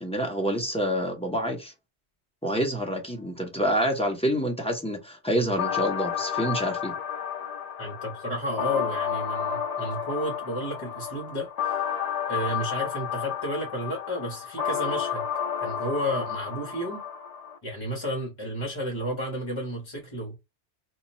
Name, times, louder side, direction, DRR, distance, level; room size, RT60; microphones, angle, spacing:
voice 1, 0.0-1.7 2.4-6.9, equal, 5° left, 0.6 m, -27 dB
sound 1, 5.6-17.6, left 8 dB, 50° left, 0.5 m, -31 dB
voice 2, 7.8-11.9 12.3-15.3 15.6-17.0 17.6-20.4, equal, 30° left, 0.9 m, -32 dB
2.8 x 2.3 x 4.1 m
omnidirectional pair, 1.2 m